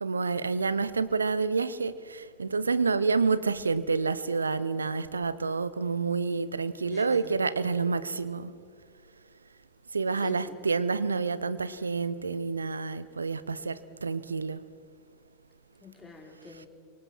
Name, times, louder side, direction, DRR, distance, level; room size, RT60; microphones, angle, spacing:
voice 1, 0.0-8.5 9.9-14.6, right 4 dB, 75° right, 16 dB, 0.8 m, -28 dB
voice 2, 6.9-7.5 10.2-10.8 15.8-16.7, left 4 dB, 15° left, 2 dB, 3.1 m, -47 dB
28.0 x 24.5 x 4.4 m, 2.2 s
figure-of-eight pair, 90°, 0 cm